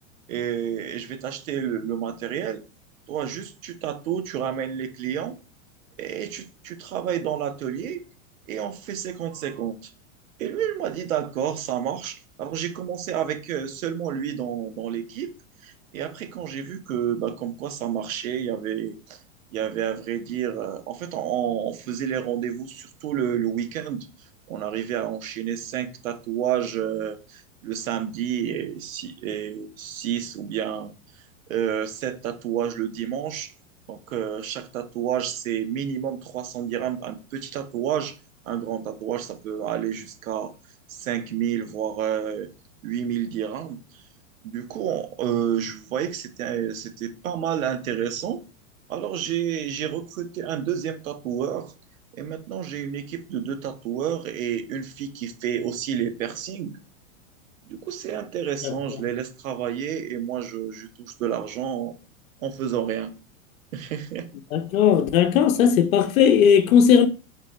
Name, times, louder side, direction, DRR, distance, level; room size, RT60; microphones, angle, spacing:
voice 1, 0.3-2.6 3.1-5.3 6.0-8.0 8.5-9.9 10.4-15.3 15.6-19.2 19.5-24.1 24.5-30.9 31.5-33.5 33.9-38.1 38.4-40.5 40.9-42.5 42.8-43.8 44.4-48.4 48.9-51.7 52.1-56.8 57.7-62.0 62.4-63.1 63.7-64.3, right 9 dB, 80° right, 0.8 m, -29 dB
voice 2, 64.5-67.1, left 8 dB, 85° left, 0.6 m, -17 dB
3.8 x 2.1 x 3.7 m
hypercardioid pair, 130°, 40 cm